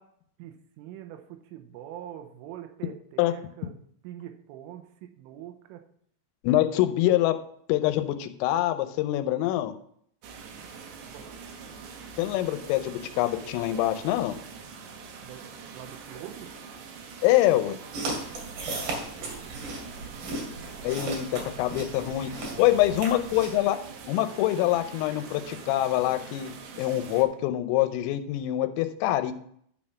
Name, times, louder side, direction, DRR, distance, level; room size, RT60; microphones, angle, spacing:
voice 1, 0.4-3.8 4.0-4.9 5.2-5.8 10.4-10.6 10.9-11.3 15.2-16.5 18.6-20.2 21.7-21.9 22.4-23.0, right 11 dB, 90° right, 6 dB, 3.3 m, -45 dB
voice 2, 6.4-7.4 7.7-9.7 12.2-14.4 17.2-17.8 20.8-23.8 24.1-29.3, left 14 dB, 90° left, 9 dB, 3.3 m, -25 dB
sound 1, 10.2-27.2, right 5 dB, 75° right, 2.7 m, -44 dB
sound 2, 17.9-23.6, right 2 dB, 55° right, 3.5 m, -36 dB
12.0 x 4.3 x 5.8 m, 0.66 s
omnidirectional pair, 5.7 m